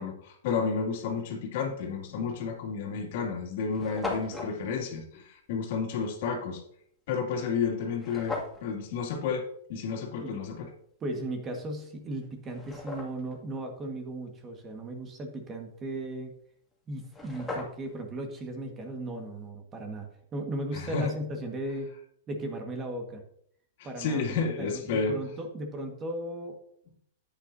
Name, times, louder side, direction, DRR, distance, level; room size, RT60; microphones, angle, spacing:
voice 1, 0.0-6.6 7.1-9.4 9.7-10.7 20.7-21.1 24.0-25.1, left 5 dB, 60° left, 2 dB, 2.4 m, -31 dB
sound 1, 2.2-2.4 3.1-3.2 3.4-3.5 3.7-4.5 8.0-8.6 11.6-11.7 12.2-13.4 16.7-16.8 17.0-18.0, left 2 dB, 5° left, 2.2 m, -37 dB
voice 2, 11.0-16.3 16.9-20.1 20.3-21.9 22.3-23.2 23.8-26.6, right 1 dB, 20° right, 4 dB, 1.6 m, -36 dB
10.0 x 8.8 x 2.7 m, 0.66 s
hypercardioid pair, 140°, 0 cm